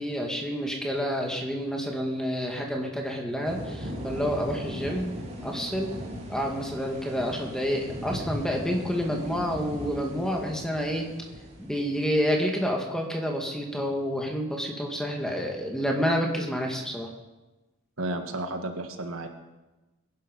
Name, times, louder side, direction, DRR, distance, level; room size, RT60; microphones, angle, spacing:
voice 1, 0.0-5.1 5.4-5.9 6.3-11.1 11.6-17.1, equal, 5° left, 1 dB, 2.1 m, -29 dB
sound 1, 3.4-12.3, equal, 30° right, 2.9 m, -38 dB
voice 2, 18.0-19.3, right 2 dB, 75° right, 6 dB, 1.7 m, -32 dB
21.0 x 11.5 x 5.4 m, 1.1 s
head